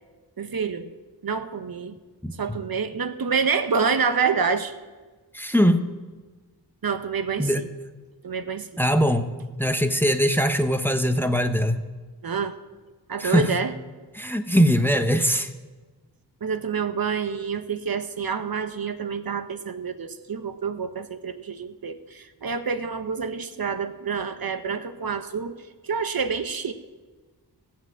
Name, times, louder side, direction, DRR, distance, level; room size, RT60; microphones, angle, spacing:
voice 1, 0.4-0.9 1.2-2.0 2.4-4.7 6.8-7.7 8.2-8.7 12.2-12.5 13.1-13.7 16.4-25.6 25.8-26.7, right 5 dB, 60° right, 9 dB, 0.8 m, -27 dB
voice 2, 2.2-2.6 5.3-5.8 7.4-7.6 8.8-9.3 9.6-11.8 13.2-13.5 14.1-15.5, equal, 5° left, 7 dB, 0.8 m, -21 dB
15.0 x 5.8 x 8.4 m, 1.3 s
wide cardioid pair, 80°, 41 cm